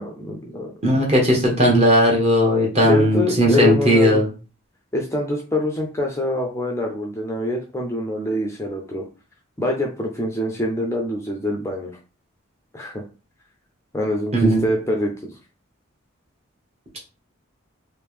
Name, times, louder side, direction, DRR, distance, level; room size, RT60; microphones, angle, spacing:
voice 1, 0.0-0.7 1.3-1.4 2.8-4.2 4.9-9.1 9.6-11.9 12.7-13.0 13.9-15.3, left 2 dB, 15° left, 0 dB, 0.5 m, -25 dB
voice 2, 0.8-4.3 14.3-14.6, equal, 30° right, -2 dB, 1.1 m, -17 dB
3.3 x 2.7 x 3.4 m, 0.34 s
head